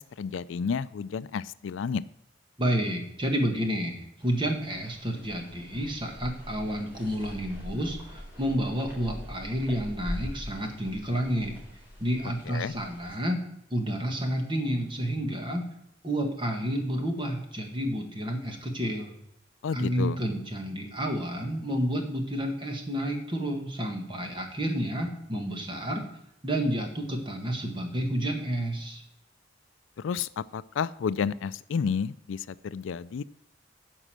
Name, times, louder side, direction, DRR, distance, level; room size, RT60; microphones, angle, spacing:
voice 1, 0.0-2.0 12.5-12.7 19.6-20.2 30.0-33.2, left 6 dB, 80° left, 17 dB, 0.4 m, -31 dB
voice 2, 2.6-11.5 12.0-13.4 13.7-15.6 16.0-19.1 19.7-26.0 26.4-29.0, equal, 25° right, 3 dB, 1.7 m, -30 dB
sound 1, 4.2-13.1, equal, 10° right, 4.2 m, -42 dB
10.0 x 5.5 x 7.6 m, 0.80 s
head